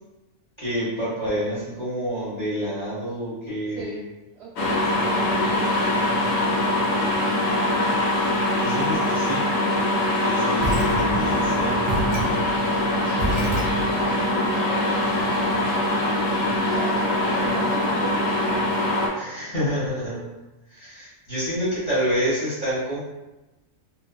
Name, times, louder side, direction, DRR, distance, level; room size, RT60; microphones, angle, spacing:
voice 1, 0.6-4.1 4.9-5.0 7.0-7.4 8.6-9.4 10.2-11.9 19.1-20.2 20.7-23.0, equal, 25° left, -10 dB, 1.0 m, -28 dB
voice 2, 3.7-4.0 4.3-6.1 13.9-15.1 16.7-18.7 20.1-20.3 21.5-21.6, right 4 dB, 55° right, -6 dB, 0.9 m, -39 dB
sound 1, 4.6-19.1, left 1 dB, 75° left, 1.0 m, -23 dB
sound 2, 10.6-14.1, right 1 dB, 85° right, 0.4 m, -29 dB
2.6 x 2.4 x 2.3 m, 1.0 s
omnidirectional pair, 1.5 m